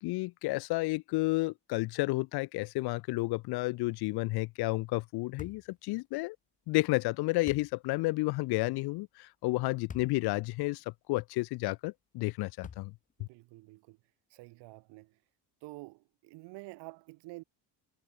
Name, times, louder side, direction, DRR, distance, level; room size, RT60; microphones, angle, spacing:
voice 1, 0.0-6.4 6.7-12.9 13.2-13.3, left 22 dB, 65° left, 0.6 m, -31 dB
sound 1, 5.4-5.7 7.5-7.7 9.9-10.2 10.8-10.9 12.6-13.1, left 7 dB, 20° left, 0.5 m, -45 dB
voice 2, 13.2-14.0 14.3-15.2 15.6-17.4, right 22 dB, 85° right, 2.9 m, -49 dB
cardioid pair, 125°, 41 cm